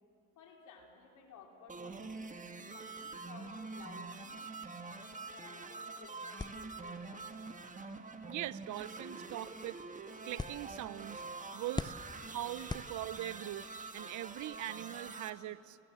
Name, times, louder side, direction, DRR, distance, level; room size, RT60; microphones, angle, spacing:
voice 1, 0.4-2.3 2.7-4.4 4.8-7.5 11.6-11.9 12.6-12.7, left 5 dB, 80° left, 1 dB, 3.9 m, -57 dB
sound 1, 1.7-15.3, right 3 dB, 25° right, 1.7 m, -46 dB
sound 2, 6.4-13.5, left 3 dB, 15° left, 0.5 m, -47 dB
voice 2, 8.3-11.2 11.5-11.9 12.3-13.7 13.9-15.8, right 14 dB, 75° right, 17 dB, 0.7 m, -42 dB
29.0 x 18.5 x 7.6 m, 2.8 s
cardioid pair, 90°, 30 cm